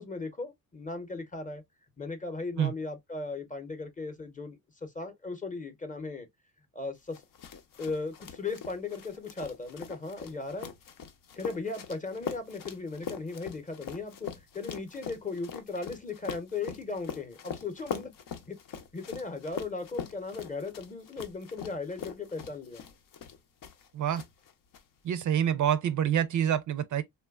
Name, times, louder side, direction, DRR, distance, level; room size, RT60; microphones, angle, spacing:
voice 1, 0.0-1.6 2.0-6.3 6.7-7.2 7.8-10.7 11.4-18.1 18.5-18.6 18.9-22.8, left 3 dB, 20° left, 0.8 m, -37 dB
sound 1, 7.1-23.9 24.1-24.8, left 7 dB, 65° left, 0.7 m, -42 dB
voice 2, 25.0-27.0, right 9 dB, 55° right, 0.5 m, -27 dB
3.1 x 2.2 x 2.3 m
cardioid pair, 75°, 37 cm